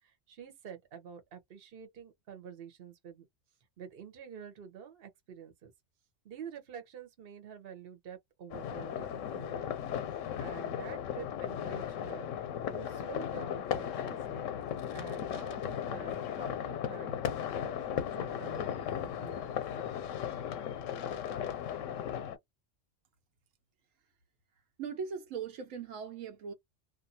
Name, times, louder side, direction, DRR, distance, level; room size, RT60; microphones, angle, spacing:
voice 1, 0.0-3.3 3.8-5.7 6.2-9.8 10.4-14.5 14.9-20.3, right 8 dB, 55° right, 1.0 m, -48 dB
sound 1, 8.5-22.4, left 9 dB, 90° left, 1.0 m, -36 dB
voice 2, 24.8-26.5, right 6 dB, 85° right, 1.1 m, -39 dB
2.5 x 2.3 x 2.7 m
omnidirectional pair, 1.3 m